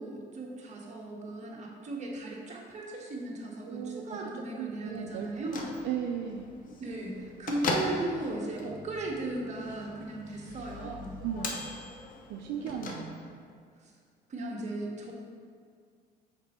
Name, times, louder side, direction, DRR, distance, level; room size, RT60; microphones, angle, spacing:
voice 1, 0.0-5.7 6.8-11.2 12.6-12.9 13.8-13.9 14.3-15.1, right 2 dB, 45° right, -2 dB, 1.3 m, -37 dB
voice 2, 3.6-6.5 10.8-10.9 11.2-11.6 12.3-13.4, right 8 dB, 85° right, 2 dB, 0.5 m, -37 dB
Bell / Microwave oven, 5.2-13.5, left 3 dB, 55° left, 0.8 m, -39 dB
5.9 x 4.3 x 4.3 m, 2.1 s
cardioid pair, 105°, 17 cm